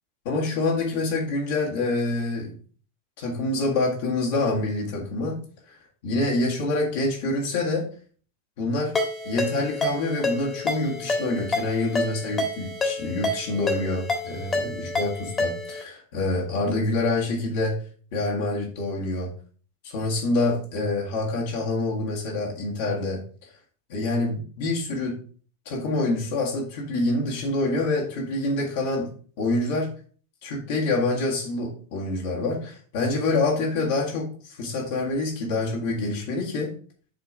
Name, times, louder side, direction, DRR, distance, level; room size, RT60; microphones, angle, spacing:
voice 1, 0.3-2.5 3.2-5.4 6.0-7.9 8.6-9.0 9.2-17.7 18.1-19.3 19.8-23.2 23.9-25.2 25.7-29.1 29.4-29.9 30.4-36.7, left 2 dB, 50° left, -2 dB, 1.8 m, -26 dB
Ringtone, 9.0-15.8, left 2 dB, 20° left, 1.6 m, -28 dB
6.8 x 3.7 x 4.7 m, 0.43 s
figure-of-eight pair, 90°, 0 cm